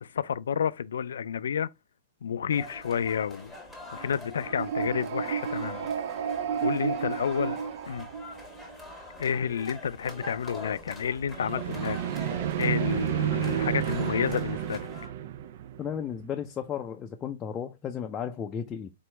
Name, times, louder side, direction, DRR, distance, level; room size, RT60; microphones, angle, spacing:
voice 1, 0.0-1.7 2.2-3.5 3.9-5.9 6.6-7.6 7.9-8.1 9.2-12.0 12.3-14.9, left 7 dB, 85° left, 0.3 m, -30 dB
sound 1, 2.5-15.1, left 1 dB, 5° right, 1.4 m, -44 dB
sound 2, 4.4-8.7 11.3-16.3, right 9 dB, 60° right, 0.4 m, -31 dB
voice 2, 15.8-18.9, left 8 dB, 20° left, 0.4 m, -34 dB
4.3 x 3.0 x 3.2 m
hypercardioid pair, 145°, 0 cm